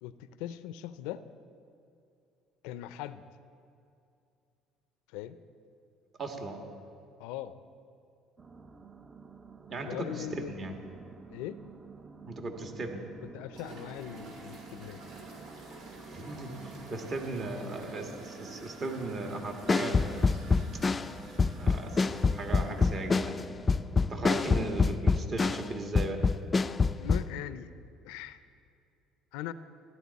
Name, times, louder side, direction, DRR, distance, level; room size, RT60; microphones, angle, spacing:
voice 1, 0.0-1.2 2.6-3.2 5.1-5.4 7.2-7.5 9.8-10.5 11.3-11.6 13.3-15.0 27.0-27.7 28.0-28.4 29.3-29.5, left 12 dB, 85° left, 14 dB, 0.5 m, -40 dB
voice 2, 6.2-6.7 9.7-10.7 12.3-13.1 16.1-20.1 20.7-20.8 21.6-23.5 24.1-26.2, right 2 dB, 45° right, 4 dB, 1.7 m, -37 dB
sound 1, 8.4-25.0, right 4 dB, 25° right, 0.6 m, -50 dB
sound 2, 13.5-23.2, right 2 dB, 70° right, 3.4 m, -50 dB
sound 3, 19.7-25.7 25.9-27.3, left 4 dB, 25° left, 0.3 m, -26 dB
14.5 x 11.0 x 4.1 m, 2.5 s
supercardioid pair, 100°, 0 cm